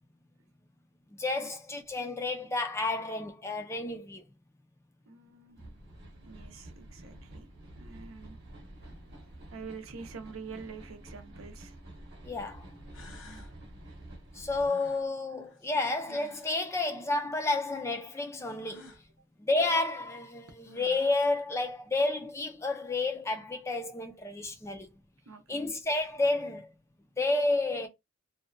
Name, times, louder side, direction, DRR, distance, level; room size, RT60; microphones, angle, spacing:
voice 1, 1.1-4.2 12.2-12.7 14.3-18.9 19.4-24.9 25.5-26.7 27.2-27.9, left 2 dB, 15° left, 0.4 m, -31 dB
voice 2, 5.1-5.6 6.2-7.5 7.8-8.4 9.5-11.7 25.3-25.7, right 5 dB, 80° right, 0.6 m, -46 dB
sound 1, 5.6-14.7, right 1 dB, 55° right, 0.9 m, -49 dB
sound 2, 11.4-11.5 12.5-12.6 12.9-13.6 14.6-16.6 18.6-19.0 20.3-20.4 20.6-21.3, left 2 dB, 75° left, 0.7 m, -52 dB
2.6 x 2.2 x 2.5 m
head